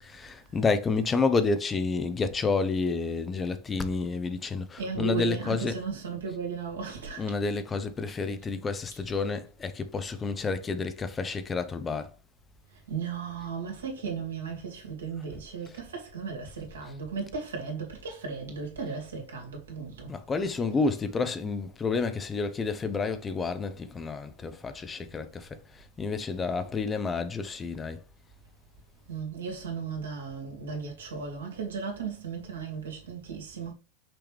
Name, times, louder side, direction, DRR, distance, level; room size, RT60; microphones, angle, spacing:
voice 1, 0.0-5.8 7.2-12.1 15.7-15.8 20.1-28.0, left 4 dB, 20° left, 0.8 m, -30 dB
voice 2, 4.8-7.3 12.9-20.1 29.1-33.7, right 6 dB, 75° right, 2.5 m, -35 dB
6.0 x 4.9 x 3.4 m
figure-of-eight pair, 85°, 0 cm